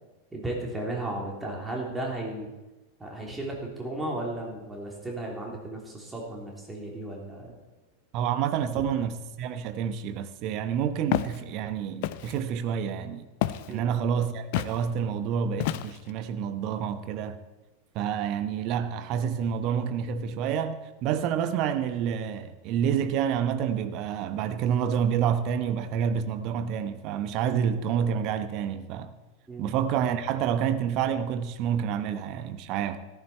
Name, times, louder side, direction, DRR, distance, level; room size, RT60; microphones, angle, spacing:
voice 1, 0.3-2.5 3.0-7.6 8.7-8.8 13.7-13.9 29.5-29.7, right 1 dB, 10° right, 3.4 m, -35 dB
voice 2, 8.1-13.3 13.7-17.4 17.9-29.1 29.6-33.0, right 8 dB, 40° right, 0.9 m, -28 dB
Walk footsteps, 11.1-11.4 12.0-12.4 13.4-13.7 14.5-14.8 15.6-16.1, left 14 dB, 50° left, 0.5 m, -29 dB
14.0 x 11.5 x 4.4 m
figure-of-eight pair, 90°, 0 cm